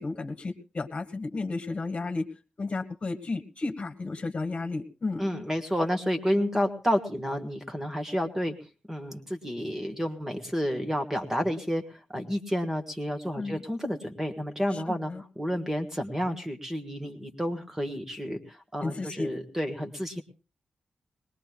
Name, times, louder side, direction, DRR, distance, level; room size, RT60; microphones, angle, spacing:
voice 1, 0.0-2.3 2.6-5.3 13.4-13.6 14.7-15.2 18.8-19.3, left 3 dB, 40° left, 8 dB, 1.7 m, -33 dB
voice 2, 5.2-8.5 8.9-15.1 15.4-20.2, equal, 10° right, 6 dB, 1.5 m, -30 dB
21.0 x 20.5 x 2.3 m, 0.34 s
wide cardioid pair, 110°, 3 cm